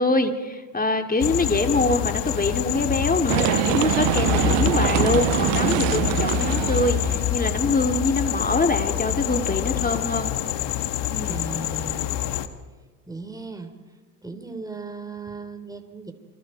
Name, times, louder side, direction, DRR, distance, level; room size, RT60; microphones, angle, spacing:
voice 1, 0.0-10.3 11.1-11.4, left 2 dB, 20° left, 6 dB, 2.5 m, -24 dB
sound 1, 1.2-12.5, left 11 dB, 60° left, 1.7 m, -26 dB
sound 2, 3.3-7.3, right 24 dB, 70° right, 0.6 m, -24 dB
voice 2, 11.2-12.2 13.1-13.7 14.2-16.1, right 4 dB, 10° right, 6 dB, 4.0 m, -36 dB
28.5 x 26.0 x 4.7 m, 1.4 s
hypercardioid pair, 75°, 47 cm